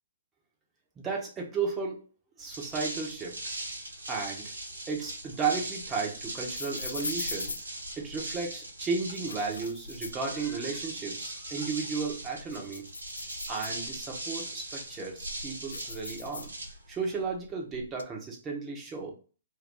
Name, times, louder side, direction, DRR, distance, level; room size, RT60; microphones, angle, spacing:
voice 1, 1.0-2.0 2.4-3.4 4.1-4.6 4.9-7.5 8.0-12.9 13.5-16.5 16.9-19.1, right 5 dB, 15° right, -1 dB, 0.9 m, -34 dB
sound 1, 2.4-17.2, right 1 dB, 80° right, 1.0 m, -40 dB
sound 2, 5.0-8.5 9.0-10.9 11.2-11.3 11.8-14.2 14.8-17.0 17.2-18.0, left 3 dB, 80° left, 0.3 m, -42 dB
2.7 x 2.2 x 3.6 m, 0.38 s
figure-of-eight pair, 130°, 0 cm